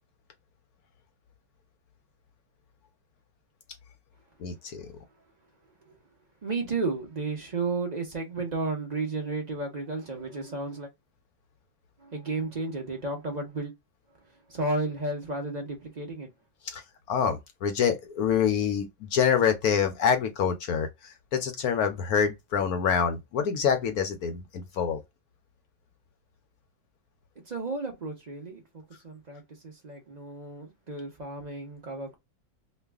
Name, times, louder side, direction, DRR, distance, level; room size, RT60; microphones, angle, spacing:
voice 1, 4.4-4.9 16.7-16.8 17.1-25.0, left 7 dB, 70° left, 0.9 m, -26 dB
voice 2, 6.4-10.9 12.0-13.7 14.5-16.3 27.5-32.1, right 3 dB, 45° right, 0.5 m, -33 dB
3.1 x 2.3 x 3.3 m
omnidirectional pair, 2.1 m